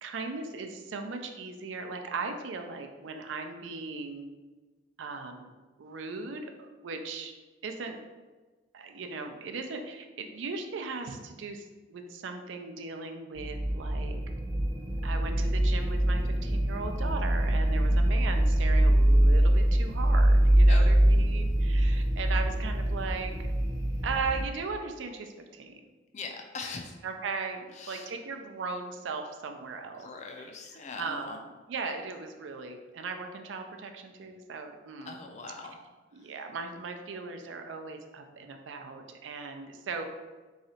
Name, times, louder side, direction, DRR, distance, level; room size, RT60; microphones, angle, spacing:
voice 1, 0.0-4.3 5.0-5.5 5.8-7.3 7.6-8.0 8.7-14.2 15.0-23.3 24.0-25.8 27.0-30.1 30.4-30.5 31.0-31.4 31.7-35.2 36.1-40.0, right 4 dB, 80° right, 5 dB, 0.4 m, -38 dB
sound 1, 13.4-24.4, right 1 dB, 20° right, 0.7 m, -24 dB
voice 2, 20.7-21.2 26.1-26.9 27.7-28.1 30.0-31.4 35.1-35.8, left 4 dB, 40° left, 3 dB, 0.4 m, -41 dB
3.7 x 3.1 x 2.8 m, 1.3 s
head